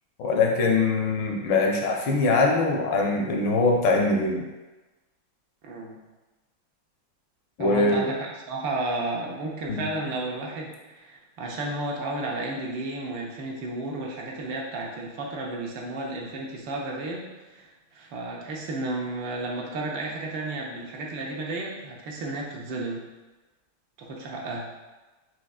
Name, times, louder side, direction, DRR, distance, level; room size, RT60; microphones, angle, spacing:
voice 1, 0.2-4.4 7.6-8.0 9.7-9.9, left 3 dB, 75° left, 1 dB, 1.1 m, -22 dB
voice 2, 5.6-5.9 7.6-23.0 24.0-24.7, right 2 dB, 75° right, -1 dB, 1.4 m, -33 dB
4.9 x 3.3 x 2.3 m, 1.2 s
omnidirectional pair, 2.2 m